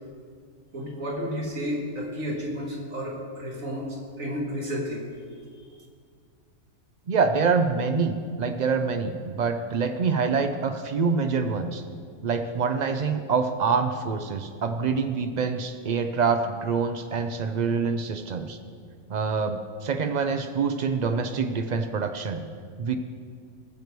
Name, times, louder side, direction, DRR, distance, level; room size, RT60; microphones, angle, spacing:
voice 1, 0.7-3.9 4.2-5.0, equal, 65° right, -1 dB, 2.2 m, -31 dB
voice 2, 7.1-11.8 12.2-18.6 19.1-22.4 22.8-23.0, right 5 dB, 85° right, 7 dB, 0.3 m, -26 dB
18.5 x 6.8 x 4.7 m, 2.1 s
omnidirectional pair, 1.5 m